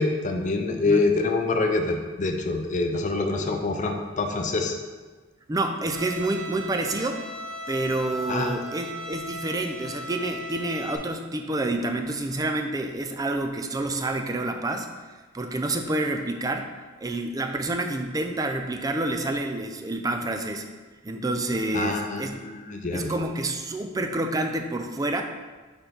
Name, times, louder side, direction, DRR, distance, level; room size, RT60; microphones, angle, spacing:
voice 1, 0.0-4.8 8.3-8.5 21.7-23.1, left 3 dB, 40° left, 3 dB, 0.6 m, -26 dB
voice 2, 5.5-7.2 7.7-14.9 15.3-16.7 17.0-20.7 21.0-22.4 22.9-25.2, right 2 dB, 20° right, 5 dB, 0.4 m, -28 dB
Bowed string instrument, 5.9-11.0, right 1 dB, 60° right, 0.9 m, -37 dB
4.4 x 4.3 x 5.1 m, 1.3 s
head